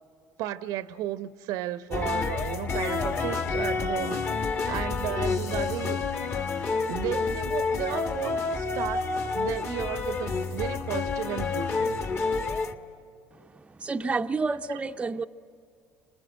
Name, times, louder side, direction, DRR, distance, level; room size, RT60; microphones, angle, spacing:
voice 1, 0.4-6.0 6.9-9.1 9.3-12.0 14.7-14.8, right 13 dB, 75° right, 0.8 m, -34 dB
sound 1, 1.9-12.7, left 4 dB, 40° left, 1.6 m, -29 dB
voice 2, 13.3-15.2, right 4 dB, 20° right, 0.6 m, -30 dB
26.0 x 20.0 x 8.9 m
supercardioid pair, 95°, 6 cm